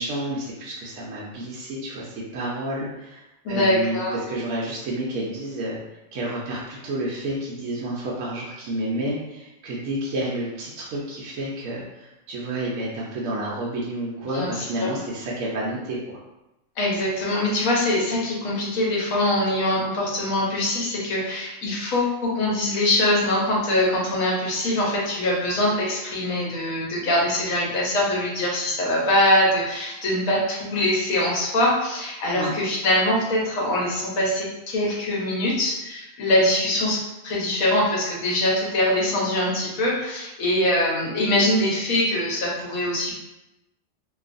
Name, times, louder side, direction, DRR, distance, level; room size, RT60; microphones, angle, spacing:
voice 1, 0.0-5.8 6.1-16.2 32.3-32.5, right 1 dB, 80° right, -5 dB, 1.0 m, -30 dB
voice 2, 3.4-4.2 14.3-15.0 16.8-43.1, left 1 dB, 80° left, -4 dB, 1.2 m, -23 dB
2.8 x 2.3 x 2.5 m, 0.95 s
omnidirectional pair, 1.4 m